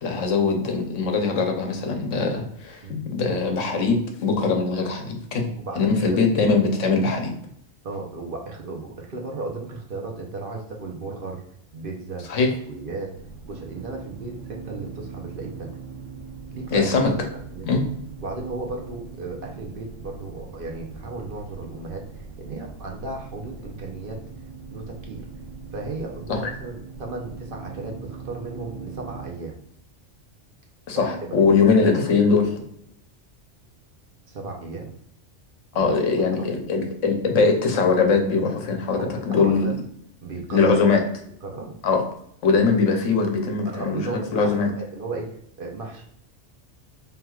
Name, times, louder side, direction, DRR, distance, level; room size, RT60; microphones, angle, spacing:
voice 1, 0.0-7.3 12.3-12.5 16.7-17.1 17.6-17.8 26.3-26.4 30.9-32.5 35.7-39.7 40.5-41.0 41.8-42.0 42.4-44.7, left 4 dB, 85° left, 3 dB, 1.1 m, -21 dB
voice 2, 5.6-6.3 7.8-11.4 11.7-13.1 13.5-15.7 16.5-16.9 17.3-17.7 18.2-24.2 24.7-25.3 25.7-29.6 30.9-31.3 34.3-34.9 35.7-35.9 36.3-36.8 38.9-39.7 40.2-41.0 41.4-41.7 43.7-46.0, right 3 dB, 55° right, 0 dB, 0.8 m, -35 dB
sound 1, 13.1-29.3, right 4 dB, 90° right, 1.1 m, -41 dB
4.5 x 3.4 x 2.3 m, 0.69 s
omnidirectional pair, 1.3 m